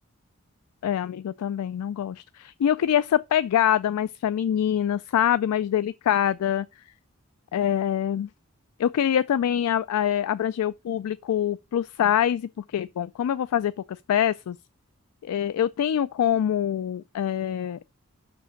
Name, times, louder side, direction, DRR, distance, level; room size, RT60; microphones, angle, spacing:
voice 1, 0.8-6.7 7.5-8.3 8.8-14.6 15.2-17.8, left 10 dB, 85° left, 0.3 m, -25 dB
5.9 x 5.1 x 5.8 m
head